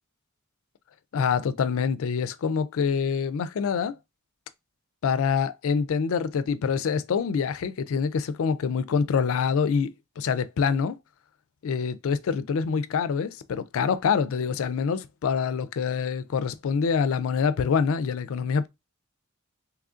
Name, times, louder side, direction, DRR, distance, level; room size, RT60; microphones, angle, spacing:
voice 1, 1.1-4.0 5.0-9.9 10.2-11.0 11.6-18.7, left 6 dB, 70° left, 0.4 m, -25 dB
3.0 x 2.4 x 3.6 m
head